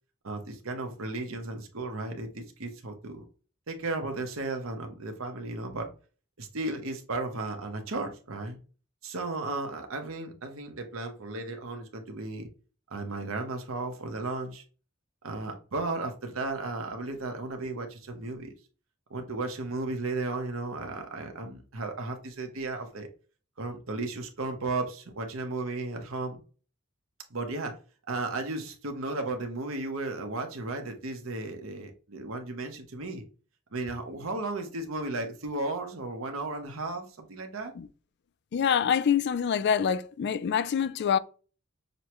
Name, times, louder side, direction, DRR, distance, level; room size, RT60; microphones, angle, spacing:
voice 1, 0.2-3.2 3.7-5.9 6.4-8.6 9.0-12.5 12.9-14.6 15.2-18.5 19.1-23.1 23.6-26.4 27.3-27.8 28.1-33.2 33.7-37.7, right 2 dB, 75° right, 0.9 m, -34 dB
voice 2, 38.5-41.2, left 7 dB, 55° left, 0.3 m, -25 dB
6.5 x 2.2 x 3.0 m
head